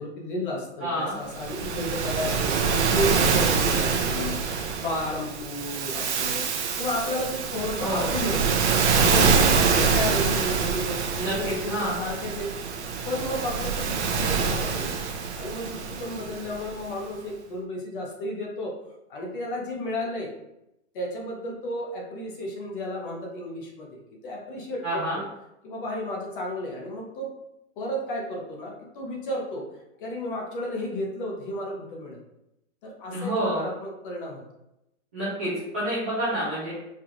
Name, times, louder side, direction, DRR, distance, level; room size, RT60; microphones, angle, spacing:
voice 1, 0.0-8.4 9.0-12.5 13.1-14.9 15.4-18.8 19.1-20.3 20.9-25.2 25.6-27.3 27.8-29.6 30.0-32.2 32.8-34.4, left 1 dB, 40° left, -1 dB, 1.0 m, -32 dB
voice 2, 0.8-1.1 7.8-8.0 11.2-12.0 24.8-25.2 33.1-33.6 35.1-36.7, right 1 dB, 10° right, -13 dB, 0.3 m, -28 dB
Waves surf, 1.3-16.8, right 5 dB, 60° right, 0.7 m, -25 dB
4.5 x 2.4 x 3.0 m, 0.86 s
hypercardioid pair, 155°, 39 cm